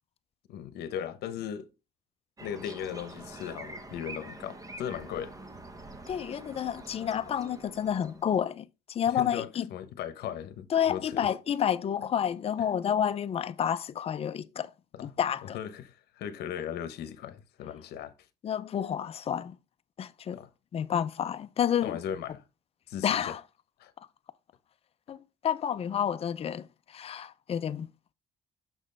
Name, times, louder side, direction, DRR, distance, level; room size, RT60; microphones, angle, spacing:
voice 1, 0.5-1.7 2.4-5.3 9.1-11.3 14.9-15.2 15.5-18.1 20.3-20.5 21.8-22.4 22.9-23.4 23.8-23.9, left 9 dB, 70° left, 0.9 m, -37 dB
sound 1, 2.4-8.4, right 2 dB, 20° right, 1.0 m, -46 dB
voice 2, 6.1-9.7 10.7-14.7 15.0-15.6 18.4-19.6 20.0-20.4 20.7-22.0 23.0-23.4 25.1-27.9, left 9 dB, 35° left, 0.5 m, -30 dB
6.5 x 6.1 x 3.3 m
cardioid pair, 110°, 17 cm